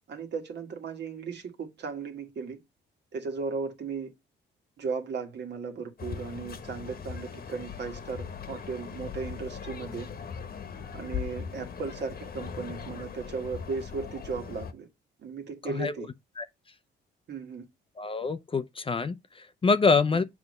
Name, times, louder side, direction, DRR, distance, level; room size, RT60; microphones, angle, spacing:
voice 1, 0.1-2.6 3.1-4.1 4.8-10.1 10.9-14.9 15.2-16.1 17.3-17.7, right 5 dB, 60° right, 1.6 m, -36 dB
sound 1, 6.0-14.7, left 7 dB, 50° left, 1.2 m, -39 dB
voice 2, 15.6-15.9 16.4-16.5 18.0-20.2, left 4 dB, 25° left, 0.6 m, -26 dB
7.1 x 3.5 x 5.3 m
cardioid pair, 90°, 20 cm